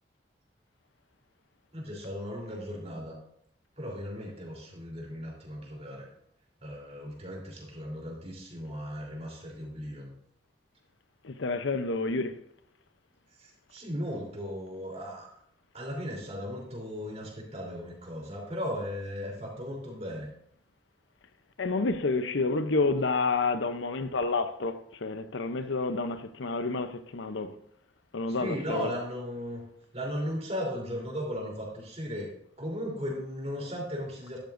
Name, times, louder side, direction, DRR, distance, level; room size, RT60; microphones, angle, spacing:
voice 1, 1.7-3.2 3.8-6.1 6.6-10.1 13.4-15.4 15.7-20.3 28.3-29.6 29.9-32.3 32.6-34.4, equal, 35° right, 3.6 m, -36 dB
voice 2, 11.2-12.3 21.6-27.6 28.1-28.9, left 3 dB, 85° left, 0.7 m, -29 dB
12.5 x 12.0 x 2.6 m
head